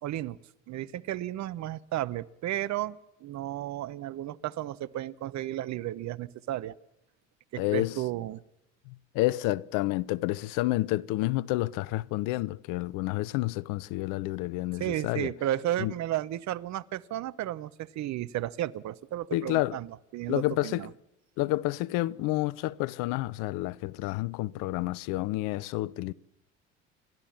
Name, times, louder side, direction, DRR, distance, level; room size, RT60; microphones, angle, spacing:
voice 1, 0.0-0.4 0.7-6.7 7.5-8.4 14.8-20.9, right 13 dB, 50° right, 0.9 m, -33 dB
voice 2, 7.6-8.0 8.9-15.3 15.8-15.9 19.3-19.8 20.3-20.8 21.4-26.1, left 18 dB, 65° left, 0.7 m, -29 dB
29.5 x 12.0 x 7.3 m
hypercardioid pair, 60°, 35 cm